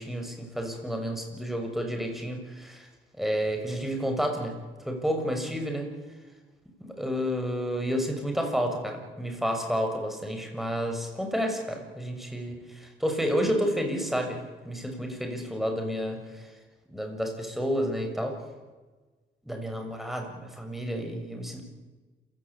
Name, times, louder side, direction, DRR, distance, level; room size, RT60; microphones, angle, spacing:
voice 1, 0.0-2.9 3.2-4.6 4.8-5.9 6.8-16.5 16.9-18.4 19.4-21.6, equal, ahead, 4 dB, 6.7 m, -30 dB
27.5 x 17.0 x 8.7 m, 1.3 s
cardioid pair, 90°, 20 cm